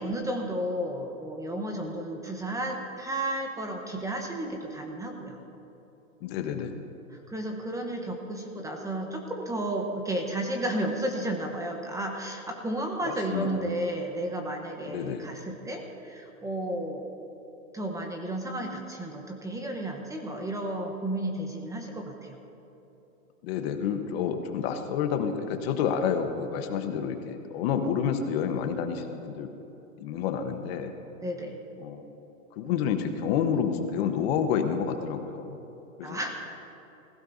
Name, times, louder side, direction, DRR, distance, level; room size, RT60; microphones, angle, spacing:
voice 1, 0.0-5.4 6.5-6.6 7.1-17.1 17.7-22.4 31.2-31.6 36.0-36.6, right 1 dB, 10° right, 2 dB, 0.9 m, -33 dB
voice 2, 6.2-6.8 13.0-13.5 14.9-15.3 23.4-29.5 30.0-30.9 31.8-32.0 32.6-35.6 36.0-36.2, left 7 dB, 45° left, 7 dB, 1.2 m, -29 dB
21.0 x 15.5 x 2.7 m, 3.0 s
hypercardioid pair, 130°, 41 cm